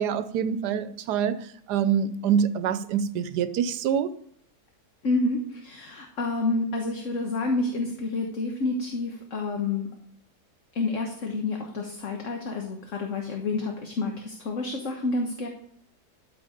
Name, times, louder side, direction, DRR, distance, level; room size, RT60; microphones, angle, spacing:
voice 1, 0.0-4.1, right 8 dB, 80° right, 13 dB, 1.3 m, -26 dB
voice 2, 5.0-9.9 10.7-15.5, left 3 dB, 50° left, 2 dB, 1.4 m, -29 dB
12.5 x 5.5 x 5.1 m, 0.68 s
omnidirectional pair, 1.8 m